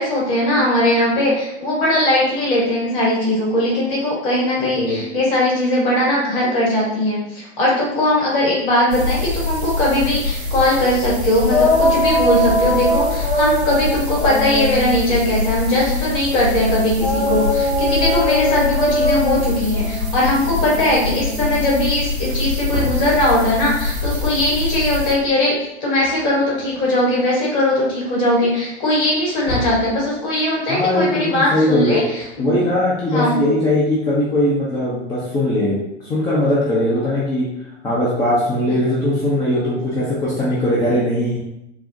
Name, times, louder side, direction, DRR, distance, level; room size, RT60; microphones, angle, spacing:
voice 1, 0.0-25.5 25.8-32.5 33.1-33.4, left 1 dB, 40° left, -4 dB, 1.4 m, -19 dB
sound 1, 8.9-25.1, left 3 dB, 75° right, 0.8 m, -24 dB
sound 2, 11.5-16.1 17.0-21.7, left 1 dB, 60° left, 1.1 m, -22 dB
Wood, 22.3-24.5 25.6-25.7 26.0-27.2 27.7-27.8 29.0-29.9 32.0-32.9, left 1 dB, 80° left, 1.1 m, -32 dB
voice 2, 30.7-32.0 32.4-35.8 36.0-37.5 37.8-41.4, left 1 dB, 10° left, -7 dB, 0.5 m, -19 dB
3.9 x 2.0 x 2.7 m, 0.84 s
figure-of-eight pair, 95°, 34 cm